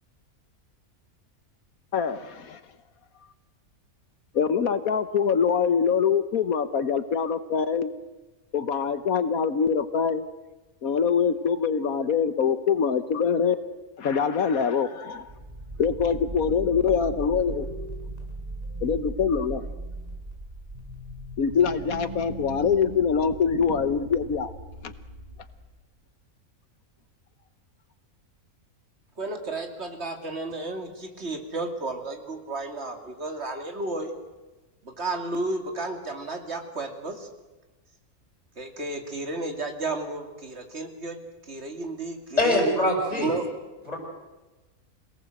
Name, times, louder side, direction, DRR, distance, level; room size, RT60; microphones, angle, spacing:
voice 1, 1.9-2.6 4.3-7.9 8.5-10.2 10.8-13.5 14.0-15.3 15.8-17.7 18.8-19.6 21.4-24.5 24.8-24.9, left 6 dB, 70° left, 12 dB, 1.4 m, -24 dB
sound 1, 15.1-25.8, right 1 dB, 25° right, 6.2 m, -38 dB
voice 2, 29.2-34.1 34.8-37.3 38.6-41.2 41.5-42.7 43.1-43.5, right 2 dB, 45° right, 5 dB, 2.9 m, -32 dB
voice 3, 42.4-43.3 43.9-44.0, left 1 dB, 25° left, 1 dB, 6.3 m, -23 dB
26.5 x 18.5 x 7.8 m, 1.1 s
omnidirectional pair, 1.6 m